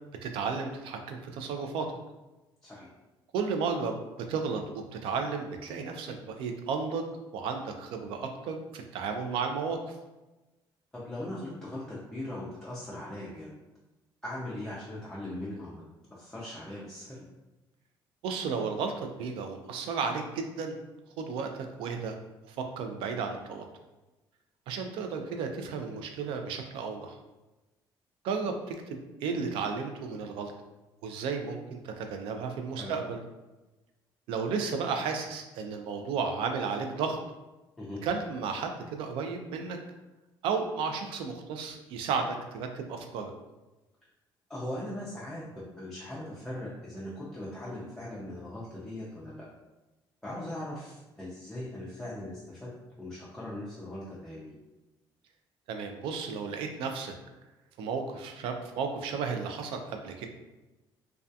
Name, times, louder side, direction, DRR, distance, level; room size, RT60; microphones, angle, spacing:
voice 1, 0.2-1.9 3.3-4.0 4.3-4.6 4.9-9.9 18.2-20.8 21.2-22.2 22.5-23.7 24.7-27.2 28.2-30.5 31.0-33.2 34.3-37.2 38.0-39.8 40.4-43.3 55.7-57.1 57.8-60.3, right 5 dB, 85° right, 5 dB, 0.4 m, -33 dB
voice 2, 10.9-13.5 14.2-15.8 16.1-17.2 32.8-32.9 37.8-38.0 44.5-49.4 50.2-52.7 53.0-54.5, left 1 dB, 5° left, -8 dB, 0.4 m, -39 dB
2.2 x 2.2 x 2.6 m, 1.1 s
cardioid pair, 160°, 9 cm